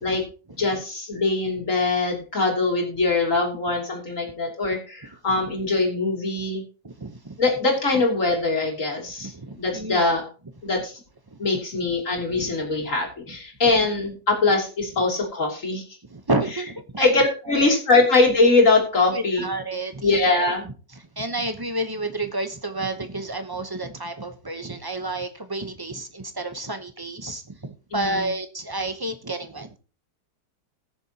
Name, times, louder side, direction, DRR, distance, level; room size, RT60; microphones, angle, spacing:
voice 1, 0.6-6.6 7.4-10.3 10.6-11.0 11.4-15.8 16.4-16.6 17.0-19.5 20.0-20.6 27.9-28.3, left 3 dB, 45° left, 3.2 m, -22 dB
voice 2, 6.8-7.4 9.2-10.1 11.3-11.4 12.4-12.5 13.3-13.4 16.1-17.8 19.1-20.4 21.2-29.8, right 2 dB, 30° right, 0.4 m, -30 dB
20.0 x 7.0 x 2.8 m
omnidirectional pair, 2.0 m